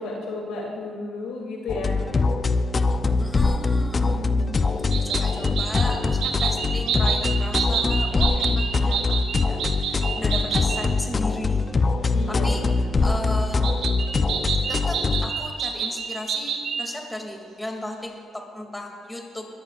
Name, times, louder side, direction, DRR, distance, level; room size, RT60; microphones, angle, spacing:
voice 1, 0.0-2.0 4.0-4.9 5.3-5.6 11.1-11.2 12.1-12.5, left 3 dB, 90° left, -2 dB, 2.8 m, -33 dB
sound 1, 1.7-15.3, left 3 dB, 35° left, 0.7 m, -23 dB
voice 2, 3.2-4.2 4.9-11.7 12.3-12.6 13.0-13.7 14.7-19.5, left 1 dB, 10° left, 1 dB, 2.6 m, -35 dB
sound 2, 4.9-10.9 13.6-16.9, right 6 dB, 80° right, 1.4 m, -28 dB
21.5 x 14.0 x 2.5 m, 2.1 s
cardioid pair, 80°, 0 cm